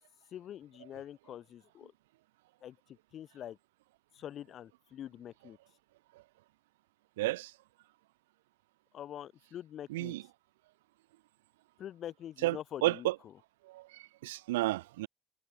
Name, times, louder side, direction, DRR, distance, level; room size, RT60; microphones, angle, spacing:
voice 1, 0.3-1.9 2.6-2.8 3.1-3.6 4.1-5.6 8.9-10.1 11.8-13.1, left 10 dB, 55° left, 7.4 m, -45 dB
voice 2, 7.2-7.5 9.9-10.2 12.4-13.2 13.6-15.1, right 18 dB, 75° right, 3.6 m, -32 dB
figure-of-eight pair, 50°, 0 cm